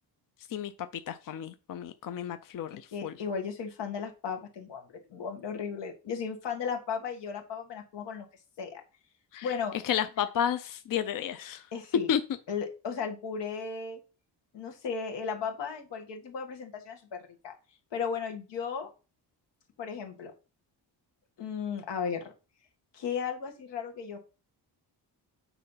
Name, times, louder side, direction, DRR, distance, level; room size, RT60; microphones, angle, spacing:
voice 1, 1.1-3.1 9.3-9.5 9.8-11.6 12.1-12.2, left 9 dB, 50° left, 0.6 m, -31 dB
voice 2, 2.9-8.3 8.6-8.8 9.4-9.8 11.7-12.1 12.5-14.0 14.5-17.5 17.9-18.9 19.8-20.3 21.4-22.3 22.9-24.2, left 6 dB, 85° left, 1.8 m, -35 dB
9.1 x 4.2 x 5.6 m
wide cardioid pair, 165°, 41 cm